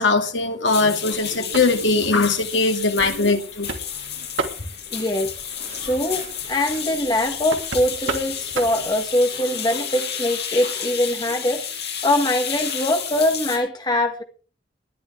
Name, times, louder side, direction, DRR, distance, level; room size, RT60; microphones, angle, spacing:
voice 1, 0.0-3.7, left 3 dB, 75° left, 2.1 m, -20 dB
sound 1, 0.7-13.6, left 8 dB, 55° left, 7.0 m, -31 dB
sound 2, 1.1-9.0, right 4 dB, 75° right, 2.5 m, -35 dB
voice 2, 4.9-5.3 5.8-14.2, left 1 dB, 20° left, 1.9 m, -23 dB
21.0 x 11.5 x 3.5 m
head